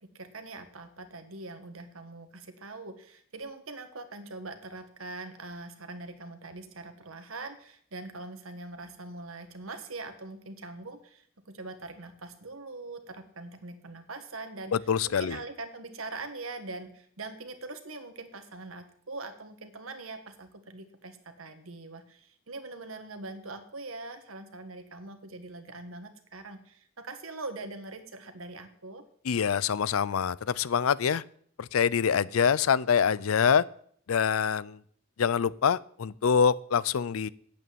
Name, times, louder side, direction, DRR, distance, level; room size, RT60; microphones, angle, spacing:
voice 1, 0.1-29.0, right 3 dB, 80° right, 1.7 m, -42 dB
voice 2, 14.7-15.4 29.3-31.2 31.6-33.6 34.1-34.8 35.2-37.3, left 7 dB, 85° left, 0.5 m, -25 dB
8.5 x 8.5 x 9.2 m
head